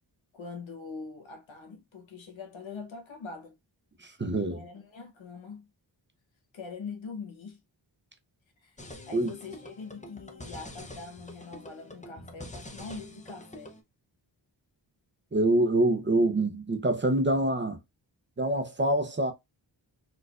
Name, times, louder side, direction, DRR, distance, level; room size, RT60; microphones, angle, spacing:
voice 1, 0.3-3.5 4.5-5.7 6.5-7.6 8.6-8.8 9.1-13.8 16.1-16.2, left 4 dB, 80° left, 1.0 m, -43 dB
voice 2, 4.0-4.6 9.1-9.3 15.3-17.8 18.4-19.3, right 1 dB, 25° right, 0.6 m, -25 dB
sound 1, 8.8-13.8, left 1 dB, 15° left, 0.6 m, -46 dB
4.2 x 2.4 x 2.3 m
cardioid pair, 60°, 45 cm